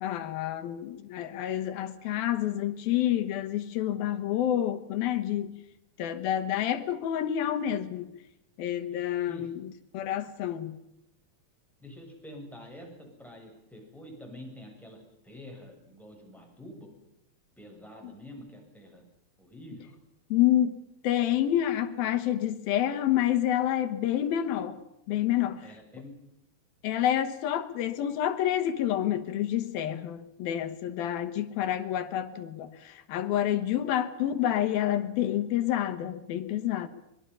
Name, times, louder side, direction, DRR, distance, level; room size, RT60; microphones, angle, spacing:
voice 1, 0.0-5.6 6.0-8.1 8.6-9.6 9.9-10.7 18.0-18.1 20.3-24.8 25.1-25.7 26.8-36.9, left 11 dB, 80° left, 3.2 m, -28 dB
voice 2, 11.8-16.9 17.6-19.1 19.4-20.0 25.6-26.1, equal, ahead, 7.5 m, -47 dB
25.0 x 22.0 x 5.7 m
omnidirectional pair, 4.2 m